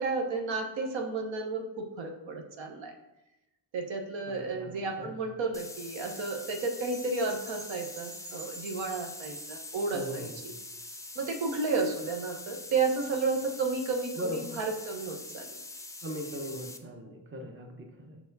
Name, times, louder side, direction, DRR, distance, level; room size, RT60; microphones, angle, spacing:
voice 1, 0.0-2.9 3.7-10.5 11.1-15.5, right 4 dB, 75° right, 4 dB, 1.1 m, -32 dB
voice 2, 4.3-5.1 9.9-10.3 14.2-14.6 16.0-18.2, equal, 25° right, 3 dB, 1.0 m, -39 dB
sound 1, 5.5-16.8, left 2 dB, 5° left, 0.4 m, -44 dB
sound 2, 6.9-12.2, right 2 dB, 55° right, 1.9 m, -50 dB
5.9 x 4.7 x 4.0 m, 0.95 s
cardioid pair, 115°, 46 cm